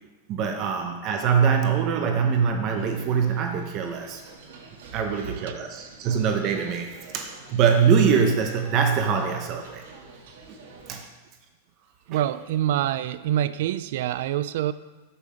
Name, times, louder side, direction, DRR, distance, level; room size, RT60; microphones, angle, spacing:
voice 1, 0.3-4.2 4.9-9.8 10.9-11.0, right 6 dB, 30° right, 4 dB, 0.7 m, -23 dB
sound 1, 2.7-10.9, right 4 dB, 85° right, 2.2 m, -47 dB
voice 2, 12.1-14.7, right 12 dB, 60° right, 15 dB, 0.3 m, -26 dB
7.6 x 6.9 x 5.0 m, 1.2 s
supercardioid pair, 165°, 0 cm